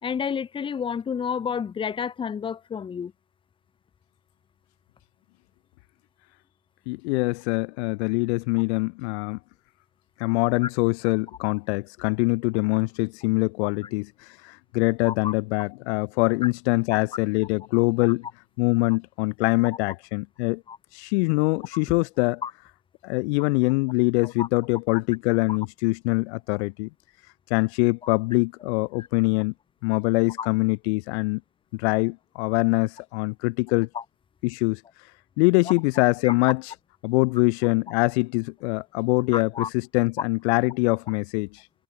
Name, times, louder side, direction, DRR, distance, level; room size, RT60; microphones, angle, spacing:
voice 1, 0.0-3.1 10.6-10.7 15.0-15.3 20.7-20.8 22.4-22.5 24.4-24.5 30.4-30.5 33.9-34.0 35.6-35.7 36.2-36.3 39.3-39.7, left 7 dB, 15° left, 1.4 m, -30 dB
voice 2, 6.9-9.4 10.2-18.3 18.6-20.6 20.9-22.4 23.0-26.9 27.5-29.5 29.8-31.4 31.7-33.9 34.4-34.8 35.4-36.7 37.0-41.7, left 27 dB, 65° left, 0.8 m, -24 dB
cardioid pair, 180°, 36 cm